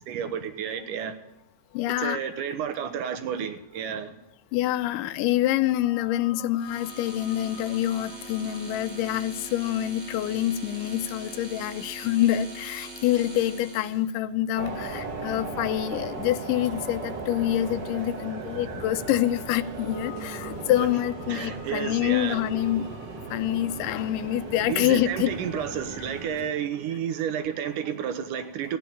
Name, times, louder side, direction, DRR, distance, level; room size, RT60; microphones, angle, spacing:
voice 1, 0.1-1.1 2.0-4.2 20.8-20.9 21.3-22.4 24.7-28.8, right 8 dB, 75° right, 2.6 m, -31 dB
voice 2, 1.7-2.2 4.5-22.9 23.3-25.7, left 13 dB, 80° left, 2.2 m, -26 dB
sound 1, 6.6-14.0, right 2 dB, 20° right, 2.9 m, -42 dB
sound 2, 14.6-26.5, right 3 dB, 40° right, 1.9 m, -37 dB
15.0 x 9.6 x 7.0 m
omnidirectional pair, 3.9 m